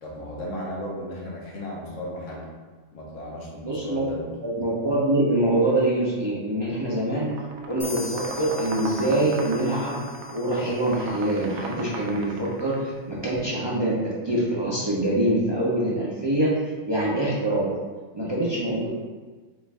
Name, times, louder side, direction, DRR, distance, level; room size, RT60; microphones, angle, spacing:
voice 1, 0.0-2.4 2.9-4.2, equal, 85° left, -4 dB, 1.4 m, -35 dB
voice 2, 3.6-4.0 4.4-7.3 7.7-10.0 10.3-16.5 16.9-17.7 18.1-18.9, right 1 dB, 30° right, -7 dB, 0.6 m, -24 dB
sound 1, 7.2-12.9, right 3 dB, 70° right, 0.8 m, -37 dB
sound 2, 7.8-11.4, left 4 dB, 50° left, 1.2 m, -42 dB
5.2 x 2.5 x 3.5 m, 1.4 s
omnidirectional pair, 1.3 m